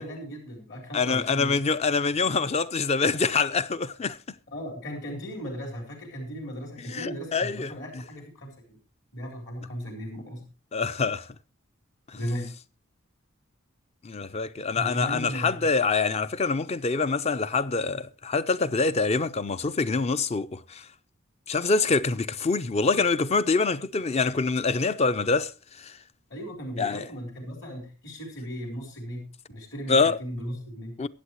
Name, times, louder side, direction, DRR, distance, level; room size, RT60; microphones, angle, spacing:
voice 1, 0.0-1.6 4.5-8.8 9.1-10.4 12.1-12.5 14.7-15.7 26.3-30.9, equal, 60° left, 4.0 m, -36 dB
voice 2, 0.9-4.2 6.9-8.0 10.7-11.3 12.1-12.2 14.0-20.9 21.5-26.0 26.8-27.0 29.9-30.2 31.0-31.1, left 4 dB, 30° left, 0.5 m, -25 dB
22.5 x 8.0 x 3.1 m
head